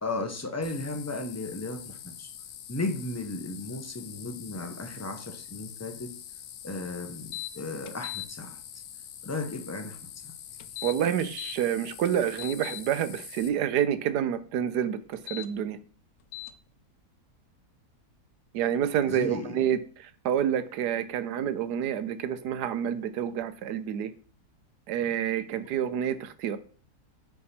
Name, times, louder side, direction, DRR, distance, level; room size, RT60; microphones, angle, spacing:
voice 1, 0.0-2.3 2.7-6.1 6.6-8.6 9.2-10.0 10.2-10.3 19.1-19.6, left 2 dB, 20° left, 0.4 m, -35 dB
sound 1, 0.6-13.5, left 10 dB, 90° left, 1.3 m, -45 dB
sound 2, 7.3-7.5 7.9-8.3 10.6-11.6 12.1-12.8 15.1-15.5 16.3-16.5, left 17 dB, 70° left, 1.0 m, -38 dB
voice 2, 10.8-15.8 18.5-24.1 24.9-26.6, right 9 dB, 85° right, 1.2 m, -28 dB
9.6 x 3.5 x 4.2 m
omnidirectional pair, 1.7 m